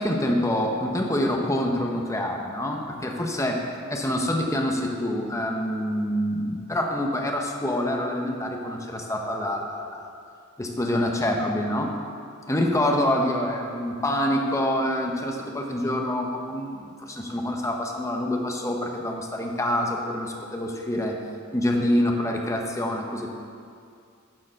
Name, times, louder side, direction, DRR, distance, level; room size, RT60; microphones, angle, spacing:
voice 1, 0.0-3.6 3.9-10.1 10.6-11.9 12.5-21.2 21.5-23.3, left 1 dB, 15° left, 1 dB, 0.9 m, -26 dB
9.7 x 4.7 x 6.4 m, 2.4 s
head